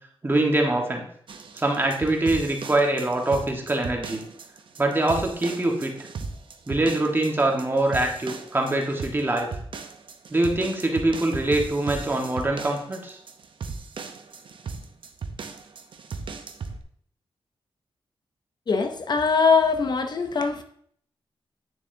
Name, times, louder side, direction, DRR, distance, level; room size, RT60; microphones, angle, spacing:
voice 1, 0.2-1.0 1.5-4.2 4.8-5.9 6.7-9.5 10.3-13.2, right 2 dB, 20° right, 1.3 m, -24 dB
sound 1, 1.3-16.8, right 4 dB, 60° right, 0.7 m, -37 dB
voice 2, 18.7-20.6, left 5 dB, 50° left, 0.6 m, -22 dB
9.0 x 6.9 x 2.6 m
wide cardioid pair, 145°, 10 cm